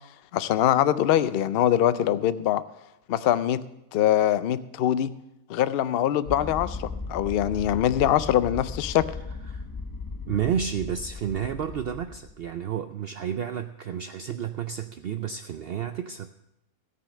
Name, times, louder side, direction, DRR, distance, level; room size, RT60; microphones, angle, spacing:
voice 1, 0.3-2.6 3.1-3.6 3.9-5.1 5.5-9.0, left 11 dB, 65° left, 14 dB, 0.6 m, -23 dB
sound 1, 6.3-12.5, left 4 dB, 20° left, 0.7 m, -37 dB
voice 2, 10.3-16.3, right 8 dB, 70° right, 8 dB, 0.5 m, -31 dB
16.5 x 5.6 x 6.5 m, 0.85 s
omnidirectional pair, 1.5 m